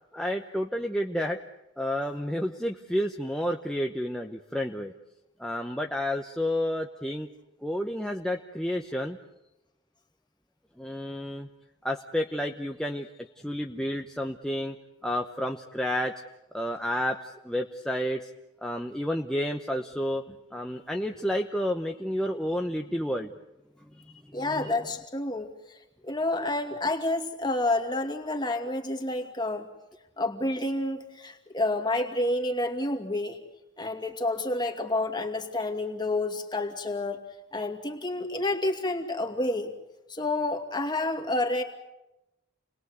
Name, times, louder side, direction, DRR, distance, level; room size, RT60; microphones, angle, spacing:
voice 1, 0.1-1.4 1.8-4.9 5.4-7.3 7.6-9.2 10.8-11.5 11.8-14.7 15.0-16.1 16.5-18.3 18.6-23.3 24.2-24.7, equal, 5° left, 2 dB, 0.9 m, -30 dB
voice 2, 24.3-29.7 30.2-33.4 33.8-37.2 37.5-39.7 40.1-41.6, left 2 dB, 20° left, 4 dB, 2.5 m, -29 dB
29.5 x 20.5 x 8.1 m, 0.98 s
head